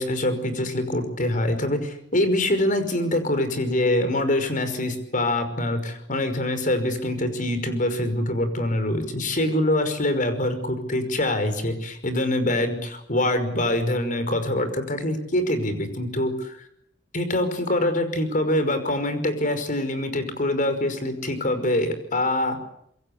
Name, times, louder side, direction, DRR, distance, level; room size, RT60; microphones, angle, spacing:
voice 1, 0.0-16.7 17.1-22.6, left 1 dB, 45° left, 9 dB, 5.5 m, -24 dB
27.0 x 23.0 x 8.4 m, 0.73 s
head